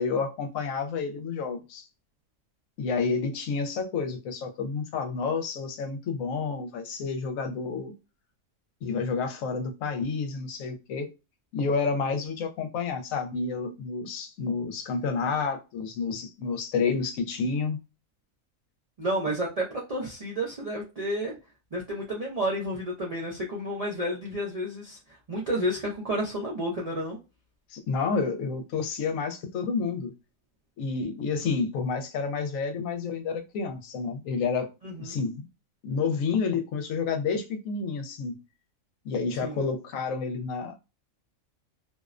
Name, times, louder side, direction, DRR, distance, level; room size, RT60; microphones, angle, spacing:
voice 1, 0.0-1.9 2.8-7.9 8.8-11.1 11.5-17.8 27.7-30.1 30.8-34.7 35.0-35.4 35.8-38.4 39.0-40.7, left 5 dB, 75° left, 1.0 m, -29 dB
voice 2, 19.0-21.3 21.7-25.0 25.3-27.2 34.8-35.2 39.4-39.6, equal, 85° right, 0.3 m, -31 dB
2.6 x 2.0 x 2.4 m
omnidirectional pair, 1.4 m